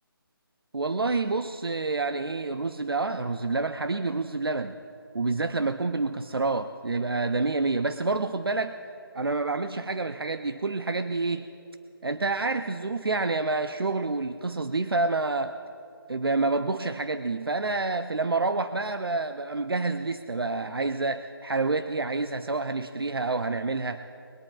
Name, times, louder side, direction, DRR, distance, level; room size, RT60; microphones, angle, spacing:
voice 1, 0.7-4.7 5.1-8.7 9.1-11.5 12.0-15.6 16.1-24.0, right 3 dB, 75° right, 10 dB, 0.6 m, -28 dB
22.0 x 21.5 x 2.4 m, 2.7 s
figure-of-eight pair, 150°, 12 cm